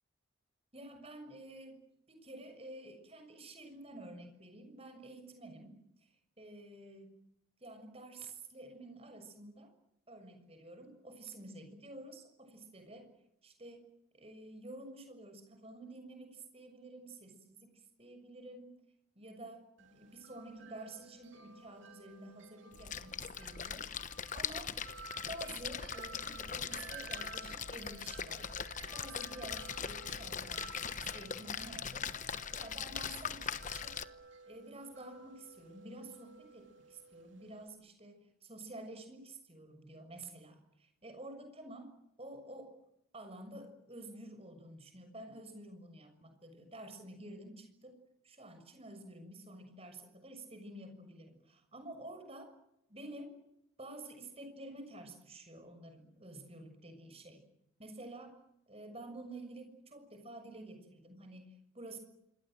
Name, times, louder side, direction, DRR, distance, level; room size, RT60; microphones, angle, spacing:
voice 1, 0.7-1.8 2.1-7.2 7.6-9.7 10.1-13.1 13.4-13.9 14.1-18.8 19.1-24.1 24.3-24.8 25.3-28.5 28.9-34.0 34.5-42.8 43.1-48.0 48.2-52.5 52.9-53.4 53.8-57.4 57.8-58.4 58.7-62.0, right 2 dB, 25° right, 7 dB, 6.6 m, -50 dB
Wind chime, 19.8-37.7, right 4 dB, 55° right, 3.1 m, -54 dB
Splash splatter, 22.7-34.1, left 7 dB, 35° left, 1.0 m, -41 dB
27.0 x 24.0 x 7.8 m, 0.84 s
head